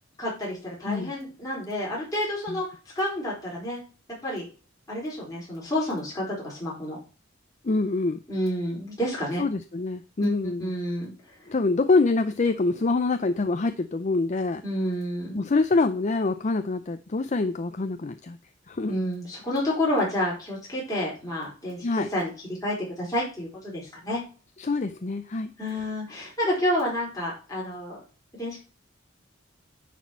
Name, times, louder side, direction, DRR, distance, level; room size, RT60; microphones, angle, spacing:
voice 1, 0.2-2.7 2.9-3.8 4.2-4.4 4.9-7.0 8.3-9.4 10.2-10.3 10.6-11.5 14.6-15.4 18.9-22.3 22.6-24.2 25.6-28.0 28.4-28.6, left 1 dB, 20° left, -5 dB, 4.5 m, -29 dB
voice 2, 7.6-8.2 9.4-10.7 11.5-14.6 15.3-18.4 18.7-19.0 21.8-22.1 24.6-25.5, left 3 dB, 40° left, 9 dB, 0.5 m, -25 dB
10.5 x 4.3 x 4.6 m, 0.35 s
head